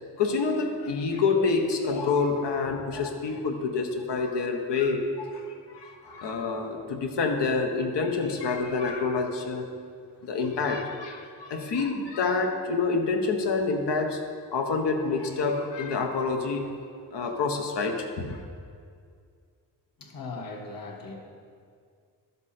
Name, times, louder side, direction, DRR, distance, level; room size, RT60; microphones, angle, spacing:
voice 1, 0.0-9.7 10.2-14.2 14.5-16.7 17.1-18.4, left 4 dB, 80° left, 3 dB, 1.2 m, -27 dB
voice 2, 20.0-21.2, left 3 dB, 55° left, -1 dB, 1.6 m, -38 dB
12.0 x 7.2 x 4.3 m, 2.2 s
wide cardioid pair, 120°, 42 cm